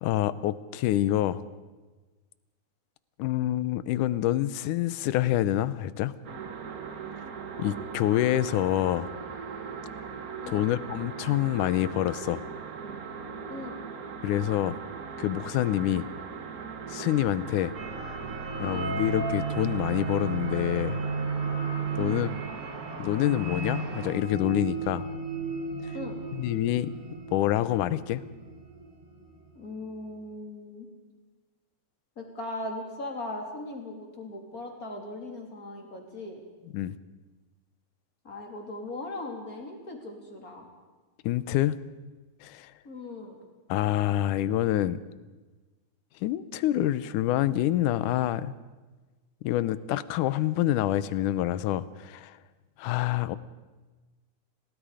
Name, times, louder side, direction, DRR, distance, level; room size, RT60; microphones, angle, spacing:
voice 1, 0.0-1.4 3.2-6.1 7.6-9.1 10.5-12.5 14.2-14.8 15.2-16.1 16.9-17.7 18.6-21.0 22.0-22.4 23.0-25.0 26.3-26.9 27.3-28.2 36.7-37.0 41.2-41.8 42.4-42.7 43.7-45.0 46.2-48.5 49.4-52.4 52.8-53.4, left 13 dB, 80° left, 16 dB, 2.2 m, -27 dB
sound 1, 6.2-24.1, right 6 dB, 75° right, 0.8 m, -40 dB
voice 2, 13.5-13.8 18.6-18.9 22.0-22.3 25.9-26.2 29.6-30.9 32.2-36.4 38.2-40.7 42.8-43.4, left 2 dB, 25° left, 1 dB, 3.5 m, -39 dB
sound 2, 17.7-29.0, right 4 dB, 55° right, 3.8 m, -34 dB
29.0 x 18.5 x 5.0 m, 1.2 s
omnidirectional pair, 3.6 m